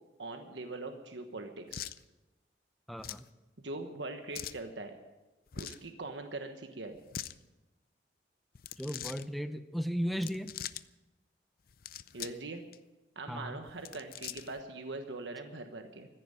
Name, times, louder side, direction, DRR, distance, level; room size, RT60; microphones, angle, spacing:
voice 1, 0.2-1.9 3.6-4.9 5.5-7.0 12.1-12.6 13.1-16.1, right 2 dB, 90° right, 5 dB, 1.3 m, -42 dB
sound 1, 1.7-2.0 3.0-3.3 4.3-4.6 5.5-5.9 6.9-7.4 8.5-9.2 10.1-10.8 11.7-12.4 12.7-12.8 13.7-14.6, left 10 dB, 55° left, 0.5 m, -42 dB
voice 2, 2.9-3.2 8.8-10.5 13.3-13.6, equal, ahead, 10 dB, 0.7 m, -35 dB
15.0 x 10.0 x 8.9 m, 1.1 s
head